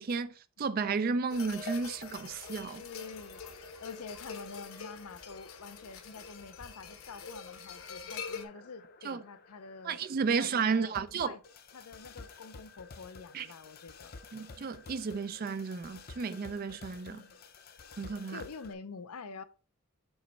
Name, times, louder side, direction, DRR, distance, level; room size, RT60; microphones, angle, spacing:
voice 1, 0.0-2.8 9.0-9.2 9.8-11.3 13.3-13.5 14.3-17.2 18.0-18.4, right 5 dB, 40° right, 0.4 m, -33 dB
sound 1, 1.3-8.4, left 5 dB, 70° left, 1.0 m, -44 dB
sound 2, 2.7-18.7, left 4 dB, 45° left, 0.6 m, -53 dB
voice 2, 2.8-10.0 10.4-11.4 11.7-14.2 17.1-17.4 18.3-19.4, left 4 dB, 85° left, 0.6 m, -47 dB
7.1 x 3.1 x 5.3 m
head